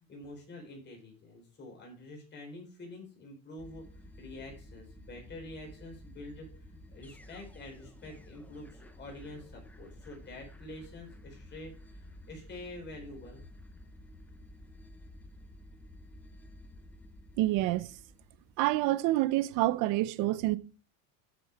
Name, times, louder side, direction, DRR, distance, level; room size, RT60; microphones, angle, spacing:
voice 1, 0.1-13.4, left 1 dB, 25° left, 4.1 m, -47 dB
sound 1, 3.6-18.9, left 1 dB, 5° left, 0.4 m, -52 dB
voice 2, 17.4-17.9 18.6-20.6, right 17 dB, 45° right, 0.6 m, -27 dB
8.7 x 6.8 x 4.6 m
cardioid pair, 155°, 46 cm